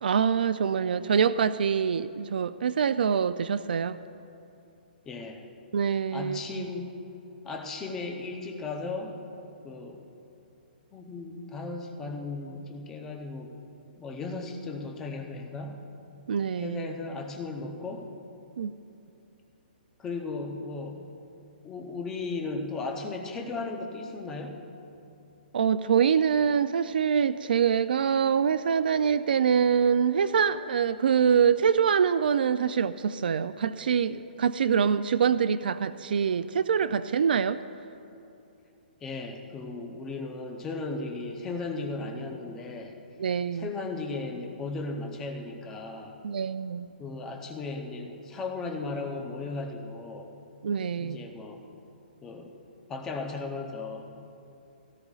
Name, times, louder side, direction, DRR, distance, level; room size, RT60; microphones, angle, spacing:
voice 1, 0.0-4.0 5.7-6.7 16.3-16.9 18.6-18.7 25.5-37.6 43.2-43.7 46.2-46.9 50.6-51.3, right 7 dB, 60° right, 12 dB, 0.3 m, -25 dB
voice 2, 5.1-5.4 6.1-6.9 7.4-9.1 9.6-10.0 10.9-13.6 14.0-15.8 16.6-18.1 20.0-21.0 21.6-24.6 39.0-43.0 43.5-46.2 47.0-50.3 51.0-51.6 52.2-52.5 52.9-54.0, left 3 dB, 10° left, 2 dB, 0.6 m, -36 dB
17.5 x 17.0 x 2.4 m, 2.7 s
hypercardioid pair, 180°, 6 cm